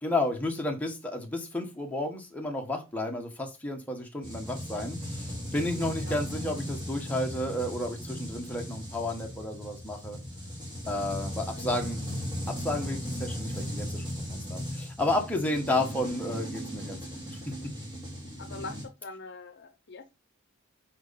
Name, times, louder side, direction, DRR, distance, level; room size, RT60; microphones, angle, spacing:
voice 1, 0.0-10.2 10.9-12.0 12.5-17.0 17.4-17.5, left 1 dB, 5° left, 1.3 m, -32 dB
sound 1, 4.2-18.9, equal, 20° right, 3.3 m, -37 dB
voice 2, 18.4-20.1, left 3 dB, 55° left, 0.8 m, -43 dB
9.2 x 4.3 x 4.2 m
head